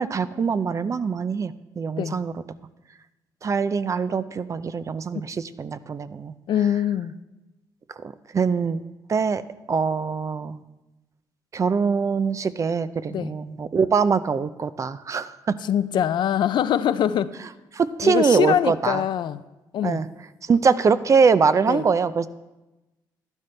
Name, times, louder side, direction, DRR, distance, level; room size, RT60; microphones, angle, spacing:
voice 1, 0.0-2.3 3.4-6.4 8.3-8.8 9.1-9.4 9.7-10.6 11.5-15.6 17.7-19.0 19.8-20.1 20.4-22.3, right 5 dB, 40° right, 14 dB, 0.5 m, -23 dB
voice 2, 6.5-7.2 13.1-13.3 15.6-17.4 18.0-19.4 19.7-20.0 21.7-21.8, left 10 dB, 70° left, 14 dB, 0.4 m, -23 dB
11.5 x 11.0 x 3.3 m, 1.0 s
cardioid pair, 80°, 8 cm